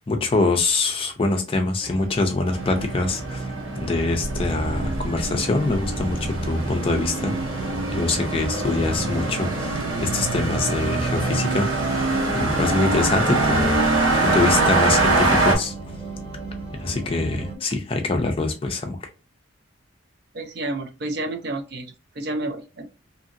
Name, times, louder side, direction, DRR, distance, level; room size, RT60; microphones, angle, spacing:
voice 1, 0.0-3.4 3.8-7.3 7.9-9.7 10.0-13.8 14.2-15.7 16.8-19.0, left 3 dB, 25° left, 0.4 m, -24 dB
sound 1, 1.8-17.6, right 3 dB, 30° right, 1.1 m, -37 dB
sound 2, 2.5-15.6, right 2 dB, 85° right, 0.9 m, -24 dB
voice 2, 20.3-21.9 22.2-22.9, right 2 dB, 55° right, 0.5 m, -30 dB
2.7 x 2.6 x 2.5 m
head